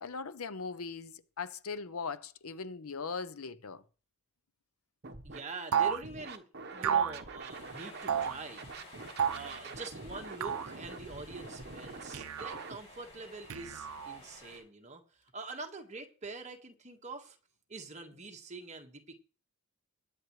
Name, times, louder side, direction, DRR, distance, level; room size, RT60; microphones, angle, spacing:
voice 1, 0.0-3.8, left 5 dB, 80° left, 0.8 m, -40 dB
Scratching (performance technique), 5.0-5.4 5.7-8.3 8.6-12.8, right 3 dB, 50° right, 1.1 m, -45 dB
voice 2, 5.2-8.6 9.3-15.0 15.3-17.4 17.7-19.2, right 3 dB, 30° right, 1.6 m, -45 dB
sound 1, 5.7-6.0 6.8-7.2 8.1-8.4 9.2-9.5 10.4-10.7 12.1-12.6 13.5-14.2, right 8 dB, 80° right, 0.5 m, -31 dB
sound 2, 7.5-14.6, left 1 dB, 30° left, 5.7 m, -53 dB
21.0 x 8.4 x 3.2 m
head